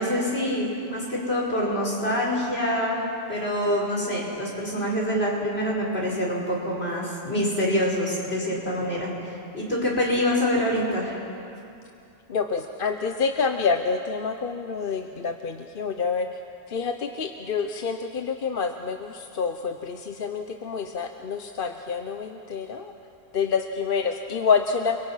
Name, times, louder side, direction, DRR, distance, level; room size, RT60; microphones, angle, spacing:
voice 1, 0.0-11.2, equal, 80° left, -3 dB, 5.3 m, -26 dB
voice 2, 12.3-16.4 16.7-22.9 23.3-25.0, left 5 dB, 60° left, 6 dB, 1.0 m, -27 dB
29.5 x 22.0 x 5.7 m, 2.6 s
omnidirectional pair, 1.0 m